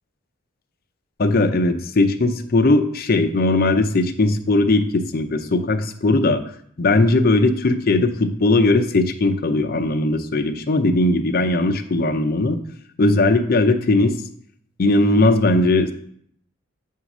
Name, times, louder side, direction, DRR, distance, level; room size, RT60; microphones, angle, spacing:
voice 1, 1.2-6.4 6.8-12.6 13.0-14.1 14.8-15.9, left 2 dB, 45° left, 6 dB, 0.5 m, -18 dB
7.8 x 2.7 x 6.0 m, 0.67 s
head